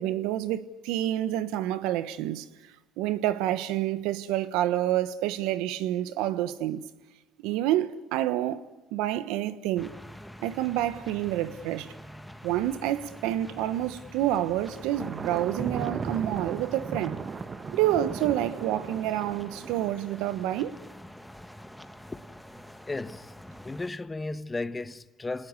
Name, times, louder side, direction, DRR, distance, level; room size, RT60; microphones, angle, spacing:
voice 1, 0.0-2.4 3.0-6.9 7.4-8.7 8.9-9.9 10.4-11.9 12.4-17.2 17.7-20.7, right 13 dB, 85° right, 1.2 m, -28 dB
sound 1, 9.8-23.9, equal, 5° left, 1.6 m, -46 dB
Thunder, 14.7-19.9, right 5 dB, 40° right, 1.3 m, -36 dB
voice 2, 22.9-23.3 23.6-25.5, left 3 dB, 20° left, 1.3 m, -34 dB
29.0 x 19.5 x 9.7 m
supercardioid pair, 80°, 0 cm